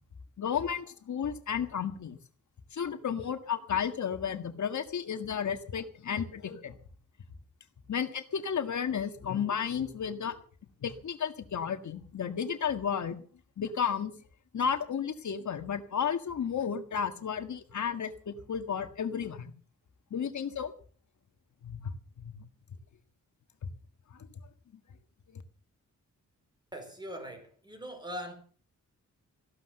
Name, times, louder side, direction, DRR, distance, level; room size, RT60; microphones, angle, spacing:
voice 1, 0.4-2.2 2.7-6.8 7.9-10.4 10.8-13.2 13.6-14.1 14.5-19.5 20.1-20.7 21.6-21.9 22.2-22.4 23.6-23.7 25.3-25.4, left 7 dB, 65° left, 1.8 m, -33 dB
voice 2, 26.7-28.3, equal, 15° right, 4.3 m, -41 dB
15.0 x 12.0 x 6.7 m
wide cardioid pair, 135°, 31 cm